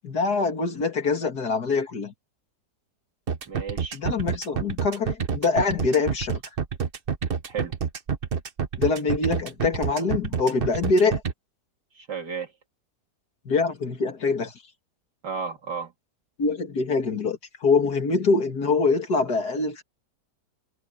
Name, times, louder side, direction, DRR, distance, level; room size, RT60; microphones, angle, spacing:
voice 1, 0.0-2.1 3.9-6.4 8.8-11.2 13.5-14.5 16.4-19.8, left 4 dB, 65° left, 2.8 m, -24 dB
sound 1, 3.3-11.3, right 6 dB, 40° right, 1.1 m, -28 dB
voice 2, 3.5-4.0 7.5-7.7 12.0-12.5 15.2-15.9, right 5 dB, 80° right, 3.5 m, -33 dB
omnidirectional pair, 1.8 m